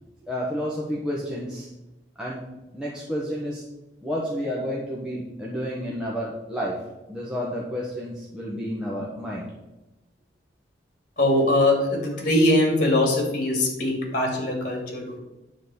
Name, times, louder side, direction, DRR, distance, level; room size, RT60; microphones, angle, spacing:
voice 1, 0.2-1.7 2.2-2.4 2.7-3.6 4.0-6.7 7.1-9.5, equal, 5° right, -6 dB, 1.3 m, -30 dB
voice 2, 11.2-15.2, left 1 dB, 45° left, 1 dB, 2.4 m, -22 dB
10.5 x 4.2 x 7.0 m, 1.0 s
head